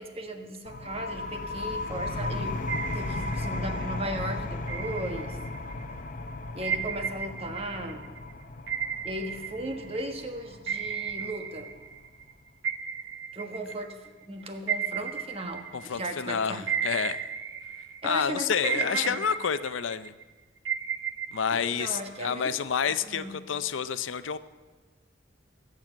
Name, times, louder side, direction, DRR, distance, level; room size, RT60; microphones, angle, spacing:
voice 1, 0.0-2.6 2.9-5.4 5.9-6.0 6.5-8.0 9.0-11.7 13.3-16.7 18.0-19.2 21.5-22.5 22.9-23.4, right 1 dB, 30° right, 5 dB, 1.4 m, -36 dB
sound 1, 0.6-12.0, left 2 dB, 45° left, 0.8 m, -36 dB
sound 2, 2.7-4.0 4.7-5.8 6.6-10.2 10.7-12.3 12.6-16.2 16.7-18.2 18.6-20.2 20.6-22.3, right 8 dB, 65° right, 0.6 m, -34 dB
voice 2, 15.7-17.2 18.0-20.1 21.3-24.4, left 7 dB, 90° left, 13 dB, 0.6 m, -29 dB
17.0 x 7.6 x 7.4 m, 1.3 s
head